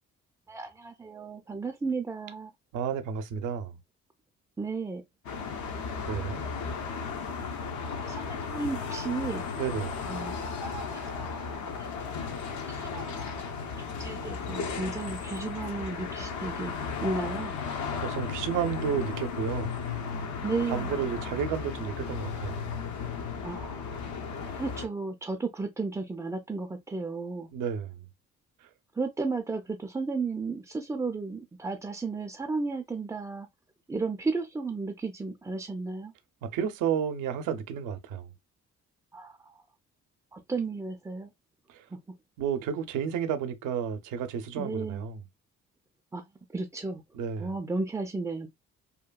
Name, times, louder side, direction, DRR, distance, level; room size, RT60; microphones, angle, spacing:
voice 1, 0.5-2.5 4.6-5.0 8.0-9.4 10.0-10.3 10.6-12.0 12.7-16.7 17.0-17.5 20.4-21.0 23.4-23.8 24.5-27.5 29.0-33.5 33.9-36.1 39.1-39.6 40.3-41.3 41.9-42.0 44.6-45.0 46.1-46.2 46.5-47.0 47.4-48.5, right 3 dB, 10° right, 0.3 m, -34 dB
voice 2, 2.7-3.8 6.0-6.4 9.6-10.0 18.0-19.8 20.7-22.7 27.5-28.1 36.4-38.3 41.7-41.8 42.4-45.2 47.1-47.5, right 7 dB, 85° right, 0.5 m, -32 dB
sound 1, 5.2-24.9, left 5 dB, 70° left, 0.7 m, -35 dB
2.8 x 2.2 x 2.2 m
cardioid pair, 90°, 30 cm